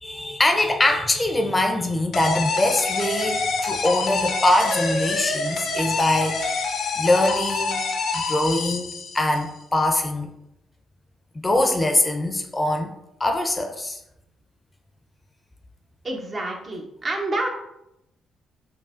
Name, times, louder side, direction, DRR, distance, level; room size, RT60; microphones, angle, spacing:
voice 1, 0.0-6.5 7.0-10.3 11.3-12.9 13.2-14.0, left 1 dB, 25° left, 4 dB, 0.6 m, -23 dB
sound 1, 2.1-9.5, left 3 dB, 65° left, 0.6 m, -26 dB
voice 2, 16.0-17.5, right 2 dB, 45° right, 0 dB, 0.9 m, -28 dB
4.8 x 2.7 x 2.5 m, 0.83 s
supercardioid pair, 55°, 0 cm